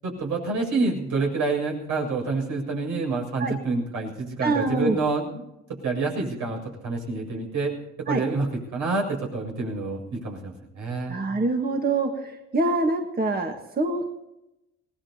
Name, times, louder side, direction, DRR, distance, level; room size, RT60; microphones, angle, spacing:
voice 1, 0.0-7.8 8.1-11.2, right 3 dB, 80° right, 0 dB, 7.4 m, -28 dB
voice 2, 4.4-5.0 8.1-8.2 11.1-14.1, right 2 dB, 30° right, 3 dB, 1.7 m, -25 dB
26.0 x 19.0 x 2.9 m, 0.93 s
cardioid pair, 90°, 30 cm